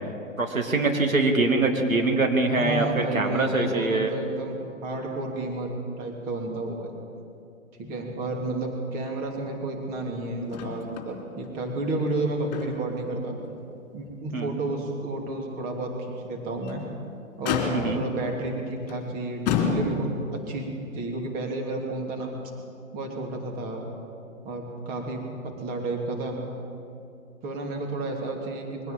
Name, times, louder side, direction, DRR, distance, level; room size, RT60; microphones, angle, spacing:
voice 1, 0.4-4.1 14.3-14.6 17.7-18.0, right 2 dB, 75° right, 3 dB, 2.8 m, -23 dB
voice 2, 2.5-6.9 7.8-13.4 13.9-16.8 17.4-20.7 20.9-22.3 22.9-23.8 24.4-26.4 27.4-28.9, right 2 dB, 20° right, 1 dB, 2.8 m, -31 dB
Motor vehicle (road), 10.5-11.1 11.4-11.5 12.1-13.0 13.4-13.6 14.1-14.2 16.4-16.9 17.4-18.1 18.9-19.0 19.5-20.3 21.3-21.4, left 6 dB, 30° left, 3.6 m, -29 dB
22.5 x 16.5 x 7.5 m, 2.5 s
figure-of-eight pair, 125°, 41 cm